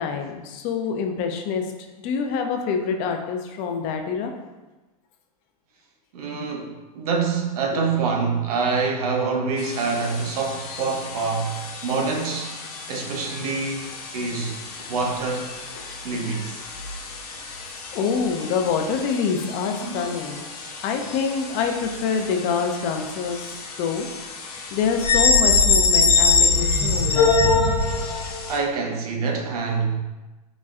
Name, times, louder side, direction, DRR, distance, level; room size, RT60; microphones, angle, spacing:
voice 1, 0.0-1.7 2.0-4.3 7.7-7.8 15.8-15.9 17.9-20.5 20.8-24.1 24.7-27.5, left 6 dB, 45° left, 4 dB, 0.5 m, -26 dB
voice 2, 6.1-12.5 12.9-14.6 14.9-15.5 16.0-16.7 19.8-20.0 28.5-30.0, right 4 dB, 75° right, 1 dB, 0.7 m, -26 dB
sound 1, 9.6-28.6, left 4 dB, 80° left, 0.7 m, -25 dB
4.0 x 3.1 x 2.4 m, 1.1 s
hypercardioid pair, 120°, 20 cm